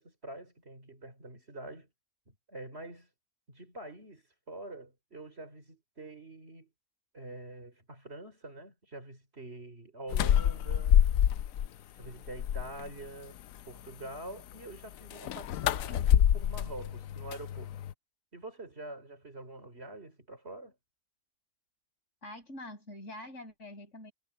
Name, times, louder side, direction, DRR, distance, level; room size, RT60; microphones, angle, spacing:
voice 1, 0.0-1.9 2.3-3.1 3.5-6.7 7.1-11.0 11.9-17.7 18.3-20.8, right 2 dB, 45° right, 4.6 m, -46 dB
sound 1, 10.1-11.7 12.0-12.9 15.1-17.9, left 10 dB, 70° left, 1.0 m, -27 dB
voice 2, 22.2-24.1, left 1 dB, 55° left, 6.1 m, -45 dB
omnidirectional pair, 1.5 m